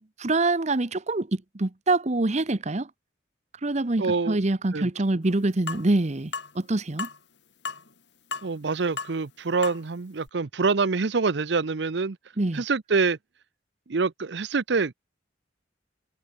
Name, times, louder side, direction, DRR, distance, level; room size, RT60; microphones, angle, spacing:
voice 1, 0.0-2.9 3.6-7.1 12.4-12.6, right 2 dB, 40° right, 0.9 m, -25 dB
voice 2, 4.0-4.4 4.7-4.9 8.4-12.2 12.5-13.2 13.9-14.9, right 4 dB, 70° right, 0.7 m, -25 dB
sound 1, 5.7-5.9 6.3-6.5 7.0-7.2 7.7-7.9 8.3-8.6 9.0-9.2 9.6-9.8 10.3-10.4, left 5 dB, 70° left, 4.8 m, -33 dB
head